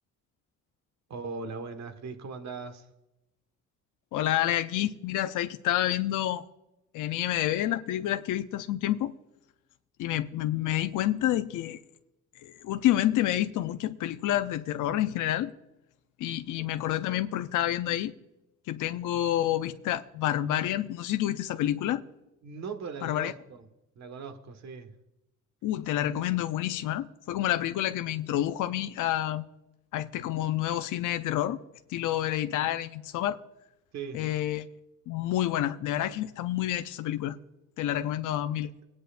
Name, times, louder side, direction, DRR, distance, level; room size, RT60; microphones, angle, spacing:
voice 1, 1.1-2.9 16.6-16.7 22.4-23.3 23.9-24.9 33.9-34.2, right 5 dB, 60° right, 1.6 m, -39 dB
voice 2, 4.1-6.4 6.9-9.1 10.0-11.8 12.4-15.5 16.2-18.1 18.7-22.0 23.0-23.3 25.6-29.4 29.9-31.6 31.9-33.4 34.1-34.7 35.1-37.4 37.8-38.7, left 13 dB, 85° left, 0.6 m, -28 dB
20.5 x 9.6 x 2.5 m
cardioid pair, 90°, 30 cm